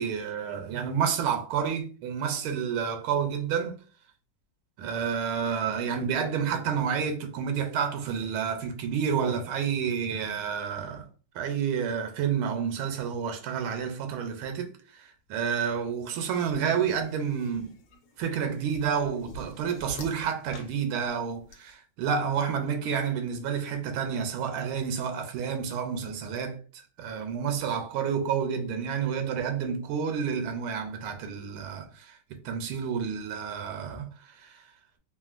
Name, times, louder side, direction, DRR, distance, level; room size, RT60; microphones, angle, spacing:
voice 1, 0.0-3.8 4.8-11.1 11.3-17.8 18.2-26.6 27.0-34.6, right 7 dB, 85° right, 1.5 m, -30 dB
sound 1, 16.5-21.5, left 1 dB, 75° left, 1.0 m, -45 dB
3.4 x 2.4 x 2.4 m
omnidirectional pair, 2.3 m